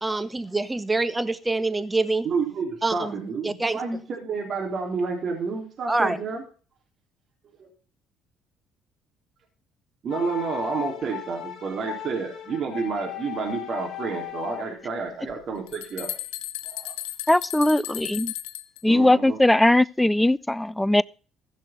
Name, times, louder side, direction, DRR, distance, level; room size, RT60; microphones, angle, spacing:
voice 1, 0.0-2.3 2.8-3.1 3.4-3.8 5.9-6.2, right 2 dB, 15° right, 1.4 m, -25 dB
voice 2, 2.2-6.4 7.6-7.7 10.0-16.2 16.7-16.9 18.9-19.4, right 5 dB, 55° right, 3.8 m, -30 dB
sound 1, 10.1-14.9, left 12 dB, 55° left, 3.0 m, -37 dB
sound 2, 15.3-15.4 15.7-18.8, left 15 dB, 85° left, 0.8 m, -35 dB
voice 3, 17.3-18.3 18.8-21.0, left 1 dB, 10° left, 0.5 m, -20 dB
15.0 x 6.4 x 5.6 m
supercardioid pair, 65°, 0 cm